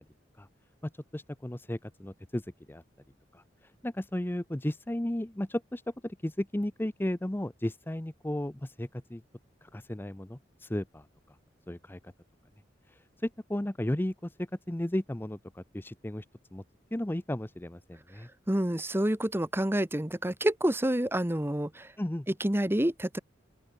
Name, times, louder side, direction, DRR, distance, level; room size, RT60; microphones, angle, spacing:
voice 1, 0.8-2.8 3.3-9.2 9.6-11.4 11.7-12.1 12.9-16.3 16.5-16.6 16.9-18.3 22.0-22.3, left 1 dB, 10° left, 0.6 m, -34 dB
voice 2, 18.5-21.9 22.4-23.2, right 1 dB, 15° right, 1.2 m, -28 dB
open air
head